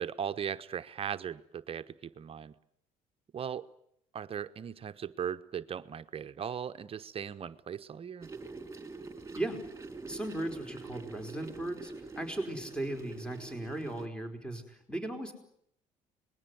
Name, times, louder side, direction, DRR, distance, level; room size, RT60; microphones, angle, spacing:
voice 1, 0.0-2.5 3.3-3.7 4.1-8.3, right 8 dB, 40° right, 10 dB, 1.1 m, -38 dB
sound 1, 8.2-14.1, right 3 dB, 20° right, 3.8 m, -45 dB
voice 2, 10.1-15.3, right 1 dB, 5° left, 5 dB, 4.9 m, -37 dB
26.0 x 21.0 x 9.5 m, 0.71 s
supercardioid pair, 85°, 14 cm